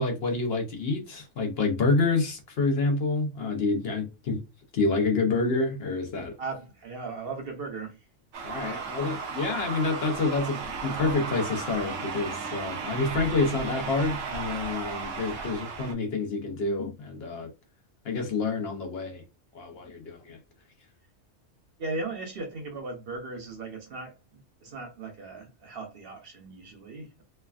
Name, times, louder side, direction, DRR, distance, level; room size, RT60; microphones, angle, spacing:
voice 1, 0.0-4.4 4.7-6.3 8.4-17.5 18.0-19.2 19.5-20.4, left 3 dB, 60° left, 0.9 m, -28 dB
voice 2, 6.4-8.0 8.6-8.9 15.3-15.5 21.8-27.2, right 3 dB, 55° right, 0.9 m, -38 dB
sound 1, 8.3-15.9, right 5 dB, 85° right, 1.0 m, -35 dB
3.2 x 2.2 x 2.3 m
omnidirectional pair, 1.3 m